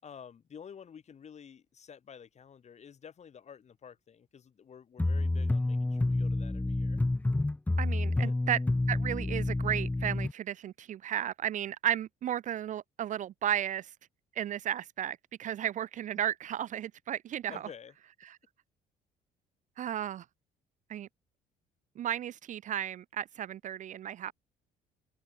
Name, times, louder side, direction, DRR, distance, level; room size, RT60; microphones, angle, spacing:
voice 1, 0.0-7.0 8.2-8.3 17.5-17.9, left 7 dB, 40° left, 5.7 m, -50 dB
sound 1, 5.0-10.3, left 2 dB, 10° left, 0.8 m, -29 dB
voice 2, 7.8-8.6 8.9-13.9 14.4-17.7 18.2-18.4 19.8-20.3 20.9-21.1 22.0-24.3, right 10 dB, 50° right, 0.5 m, -34 dB
open air
cardioid pair, 110°, 17 cm